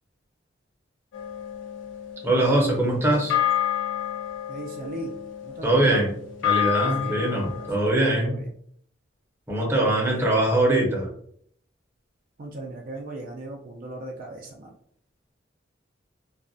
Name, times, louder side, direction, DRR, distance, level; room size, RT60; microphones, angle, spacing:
sound 1, 1.1-7.8, left 12 dB, 85° left, 0.4 m, -29 dB
voice 1, 2.2-3.4 5.6-6.1 6.4-8.3 9.5-11.1, right 1 dB, 15° right, -2 dB, 0.6 m, -22 dB
voice 2, 4.5-5.1 5.4-6.1 6.8-8.5 9.9-10.5 12.4-14.7, right 2 dB, 50° right, 0 dB, 0.4 m, -38 dB
2.3 x 2.1 x 2.5 m, 0.65 s
head